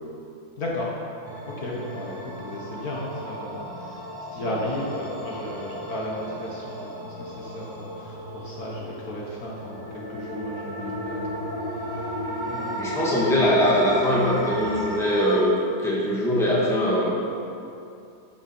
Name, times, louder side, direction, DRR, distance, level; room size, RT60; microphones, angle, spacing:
voice 1, 0.6-0.9 1.5-4.0 4.3-13.6, left 1 dB, 55° left, -3 dB, 1.9 m, -35 dB
sound 1, 1.2-15.4, equal, 15° right, 0.9 m, -34 dB
voice 2, 12.7-15.5 15.8-17.1, equal, ahead, -5 dB, 1.7 m, -21 dB
11.5 x 8.5 x 4.5 m, 2.6 s
omnidirectional pair, 1.9 m